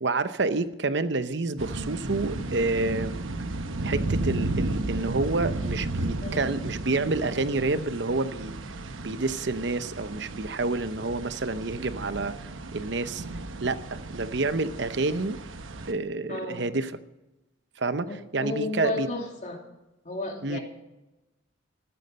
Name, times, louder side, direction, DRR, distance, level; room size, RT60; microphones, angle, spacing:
voice 1, 0.0-3.2 3.8-8.6 9.0-13.2 13.6-15.4 15.9-16.9 17.8-19.1 20.4-20.6, right 3 dB, 60° right, 12 dB, 0.8 m, -28 dB
sound 1, 1.6-15.9, right 2 dB, 80° right, 1.0 m, -34 dB
voice 2, 16.3-16.7 18.1-19.6 20.0-20.6, left 2 dB, 35° left, 1 dB, 2.9 m, -33 dB
15.0 x 12.0 x 5.6 m, 0.99 s
head